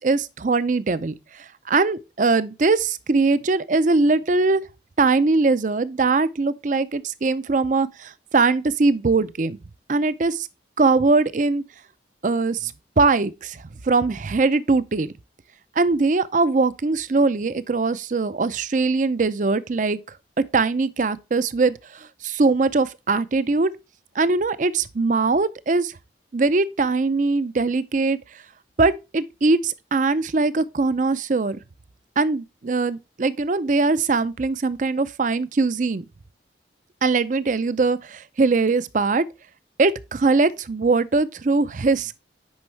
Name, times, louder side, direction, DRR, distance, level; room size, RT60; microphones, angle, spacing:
voice 1, 0.0-4.6 5.0-9.6 9.9-10.5 10.8-11.6 12.2-15.1 15.8-20.0 20.4-23.7 24.2-25.9 26.3-28.2 28.8-31.6 32.2-36.1 37.0-39.3 39.8-42.2, right 3 dB, 45° right, 0.5 m, -21 dB
9.5 x 5.3 x 3.2 m
head